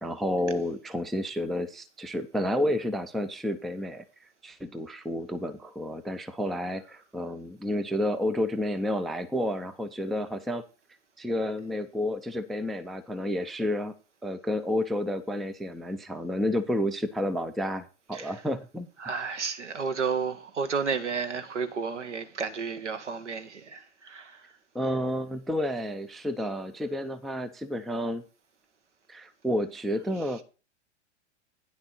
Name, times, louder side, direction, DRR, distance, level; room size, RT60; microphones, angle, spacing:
voice 1, 0.0-4.0 4.4-10.6 11.2-13.9 14.2-18.9 24.7-28.2 29.1-30.4, left 1 dB, ahead, 0.3 m, -30 dB
voice 2, 19.0-24.5, right 5 dB, 75° right, 1.3 m, -32 dB
9.8 x 7.3 x 3.9 m
figure-of-eight pair, 95°, 35 cm